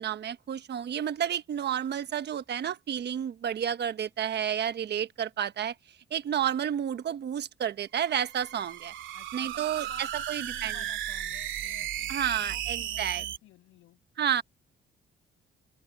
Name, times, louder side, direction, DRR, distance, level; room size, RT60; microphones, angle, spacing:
voice 1, 0.0-5.7 6.1-8.9 9.3-10.7 12.1-13.2 14.2-14.4, right 9 dB, 60° right, 1.2 m, -31 dB
sound 1, 7.9-13.4, right 12 dB, 80° right, 2.3 m, -35 dB
voice 2, 9.1-14.0, left 15 dB, 90° left, 6.6 m, -53 dB
open air
cardioid pair, 90°, 20 cm